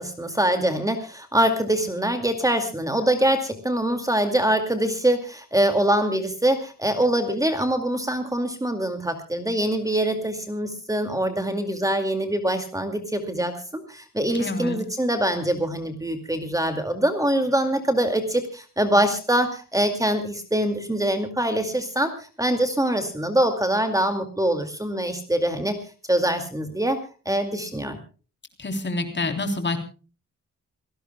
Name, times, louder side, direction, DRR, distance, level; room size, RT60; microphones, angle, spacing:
voice 1, 0.0-25.8 26.1-27.0 27.3-28.0, right 1 dB, 10° right, 6 dB, 2.2 m, -24 dB
voice 2, 14.3-14.8 28.6-29.8, left 2 dB, 35° left, 6 dB, 3.5 m, -27 dB
28.0 x 18.0 x 2.3 m, 0.37 s
wide cardioid pair, 160°, 32 cm